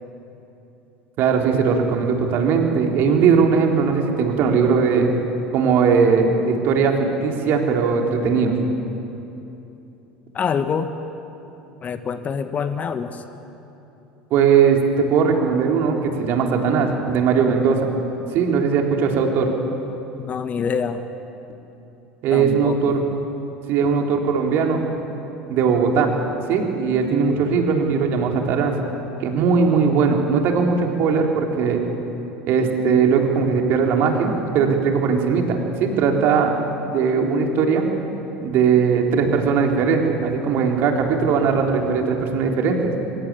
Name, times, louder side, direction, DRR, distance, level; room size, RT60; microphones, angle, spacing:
voice 1, 1.2-5.1 5.5-8.5 14.3-17.9 18.3-19.5 22.2-23.0 23.7-24.8 25.5-26.1 26.5-28.8 29.2-31.8 32.5-36.5 36.9-37.9 38.4-43.0, right 5 dB, 50° right, 2 dB, 3.8 m, -19 dB
voice 2, 10.3-10.9 11.8-13.2 20.2-21.0 22.3-23.0, left 6 dB, 30° left, 10 dB, 1.4 m, -25 dB
24.5 x 22.0 x 8.5 m, 2.9 s
figure-of-eight pair, 70°, 5 cm